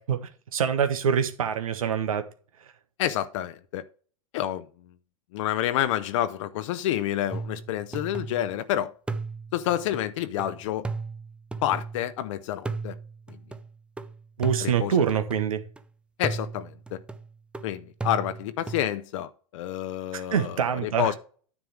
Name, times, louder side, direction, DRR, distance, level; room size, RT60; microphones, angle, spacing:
voice 1, 0.0-2.3 14.4-15.6 20.1-21.1, right 8 dB, 85° right, 1.1 m, -25 dB
voice 2, 3.0-3.8 4.3-4.7 5.3-8.9 9.5-10.9 11.6-12.9 14.6-14.9 16.2-17.0 17.6-21.1, left 12 dB, 60° left, 0.7 m, -28 dB
sound 1, 7.3-8.6 9.1-12.2 12.6-15.8 16.2-18.9, right 4 dB, 5° right, 0.5 m, -36 dB
9.8 x 3.4 x 6.3 m
hypercardioid pair, 115°, 18 cm